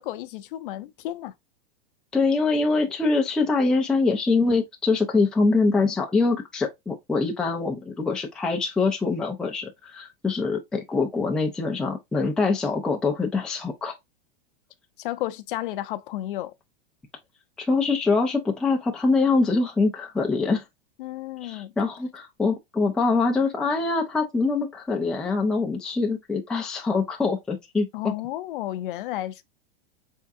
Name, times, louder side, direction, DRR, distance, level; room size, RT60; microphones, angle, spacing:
voice 1, 0.0-1.3 15.0-16.5 21.0-21.7 27.9-29.4, left 14 dB, 60° left, 0.6 m, -32 dB
voice 2, 2.1-14.0 17.6-20.6 21.4-28.1, left 3 dB, ahead, 0.4 m, -24 dB
4.4 x 3.5 x 2.5 m
supercardioid pair, 150°, 30 cm